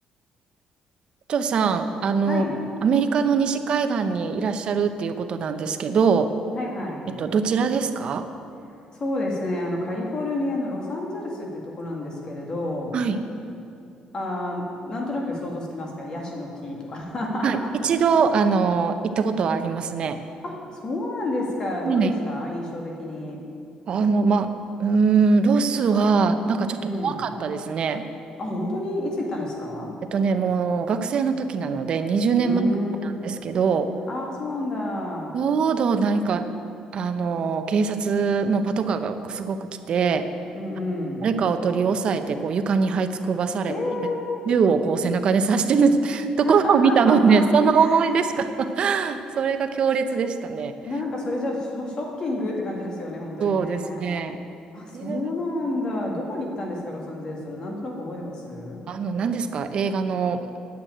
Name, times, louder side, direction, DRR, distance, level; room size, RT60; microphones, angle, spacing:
voice 1, 1.3-2.4 2.8-6.3 7.2-8.3 12.9-13.2 17.4-20.2 21.8-22.1 23.9-24.5 24.8-28.0 30.1-32.8 33.0-33.9 35.3-36.4 36.9-39.6 39.9-40.3 41.2-44.1 44.5-50.7 53.4-54.4 54.9-55.3 58.9-60.4, right 5 dB, 45° right, 8 dB, 0.7 m, -22 dB
voice 2, 2.3-2.6 6.5-7.1 8.9-13.0 14.1-17.7 20.4-23.4 26.7-27.2 28.4-29.9 32.4-33.1 34.1-35.4 40.5-41.3 43.7-44.4 46.5-47.5 47.8-48.0 50.9-54.0 54.7-58.8, left 1 dB, 35° left, 0 dB, 1.9 m, -30 dB
9.5 x 8.0 x 8.8 m, 2.6 s
cardioid pair, 150°, 2 cm